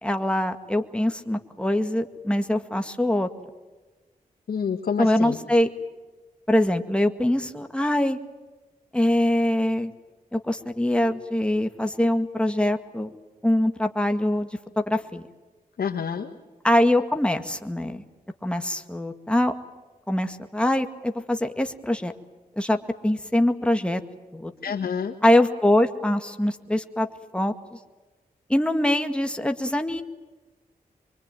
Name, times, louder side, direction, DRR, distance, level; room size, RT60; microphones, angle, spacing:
voice 1, 0.0-3.3 5.0-5.7 6.5-8.2 8.9-9.9 10.3-13.1 13.4-14.5 14.8-15.2 16.6-18.0 18.4-19.5 20.1-22.1 22.6-22.8 23.0-24.0 24.3-24.5 25.2-27.1 27.3-27.5 28.5-30.0, left 1 dB, 5° left, 6 dB, 2.0 m, -23 dB
voice 2, 4.5-5.4 15.8-16.3 24.6-25.2, left 6 dB, 85° left, 3 dB, 1.5 m, -28 dB
24.0 x 24.0 x 9.2 m, 1.2 s
cardioid pair, 60°, 15 cm